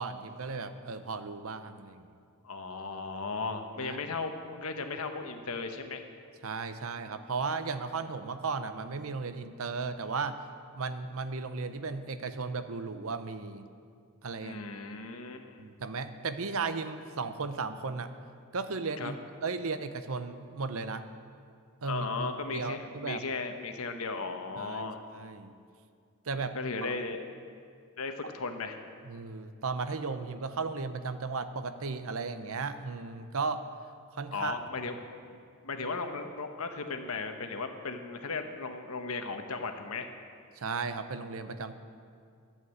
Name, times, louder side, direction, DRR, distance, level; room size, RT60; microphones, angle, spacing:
voice 1, 0.0-2.1 3.8-4.2 6.4-10.4 10.8-13.7 14.2-14.6 15.6-18.1 18.5-21.1 21.8-23.2 24.6-24.9 25.1-25.5 26.3-26.5 26.8-26.9 29.0-33.6 34.1-34.6 40.6-41.8, right 4 dB, 65° right, 10 dB, 0.7 m, -35 dB
voice 2, 2.4-6.0 14.4-15.7 19.0-19.1 21.8-25.0 26.3-27.2 28.0-28.8 34.3-35.0 35.6-40.1, left 4 dB, 70° left, 6 dB, 1.1 m, -36 dB
13.0 x 8.3 x 8.0 m, 2.3 s
head